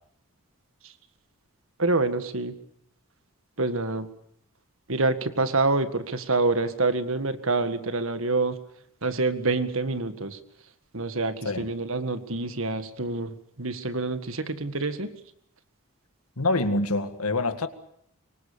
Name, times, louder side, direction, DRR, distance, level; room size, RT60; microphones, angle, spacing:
voice 1, 1.8-2.5 3.6-4.1 4.9-8.6 9.0-10.4 10.9-15.1, right 3 dB, 65° right, 10 dB, 1.8 m, -27 dB
voice 2, 16.4-17.7, left 2 dB, 85° left, 9 dB, 2.0 m, -25 dB
25.0 x 24.0 x 6.9 m, 0.69 s
head